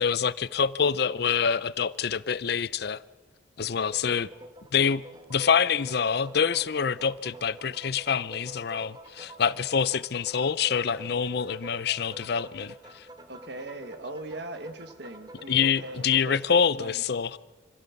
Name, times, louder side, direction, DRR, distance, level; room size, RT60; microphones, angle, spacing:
voice 1, 0.0-3.0 3.6-4.3 4.7-5.0 5.3-13.1 15.5-17.4, left 6 dB, 55° left, 0.5 m, -26 dB
sound 1, 3.9-16.6, right 2 dB, 20° right, 1.3 m, -47 dB
voice 2, 13.3-17.0, right 2 dB, 60° right, 1.5 m, -40 dB
25.5 x 15.5 x 7.2 m
head